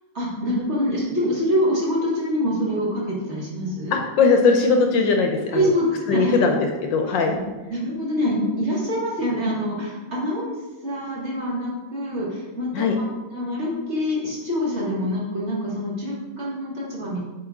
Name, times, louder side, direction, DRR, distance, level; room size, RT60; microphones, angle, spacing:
voice 1, 0.1-4.0 5.5-6.4 7.3-7.4 7.7-10.5 10.8-12.7 13.0-13.1 13.3-17.2, equal, 35° right, -5 dB, 1.7 m, -25 dB
voice 2, 3.9-5.7 6.1-7.3 12.7-12.9, left 4 dB, 70° left, 3 dB, 1.3 m, -19 dB
7.9 x 4.0 x 3.6 m, 1.2 s
omnidirectional pair, 2.2 m